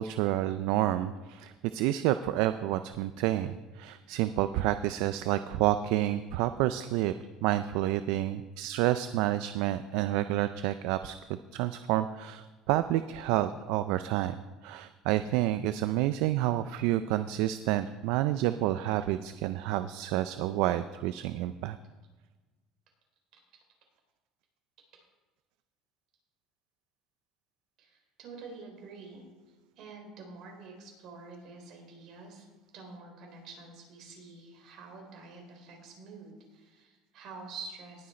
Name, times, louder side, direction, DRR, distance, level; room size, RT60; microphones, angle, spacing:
voice 1, 0.0-7.1 7.4-14.4 14.6-21.8, right 13 dB, 75° right, 12 dB, 0.4 m, -29 dB
voice 2, 23.3-23.6 27.8-29.2 29.8-32.5 32.7-38.1, right 4 dB, 60° right, 1 dB, 3.7 m, -47 dB
19.0 x 6.3 x 4.3 m, 1.3 s
supercardioid pair, 115°, 0 cm